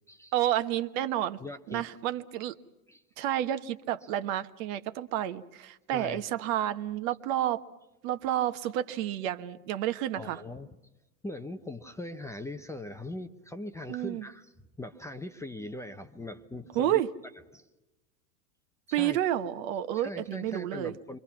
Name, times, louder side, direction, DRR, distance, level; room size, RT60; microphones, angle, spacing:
voice 1, 0.3-1.4 1.7-2.5 3.2-7.6 8.0-10.4 13.9-14.2 16.7-17.1 18.9-20.9, right 12 dB, 55° right, 1.3 m, -30 dB
voice 2, 1.4-1.9 2.9-3.0 5.9-6.2 10.2-10.7 11.2-14.5 14.8-17.0 17.5-17.7 18.9-19.2 19.9-21.2, left 1 dB, 5° left, 0.8 m, -40 dB
27.5 x 24.5 x 5.8 m
hypercardioid pair, 120°, 47 cm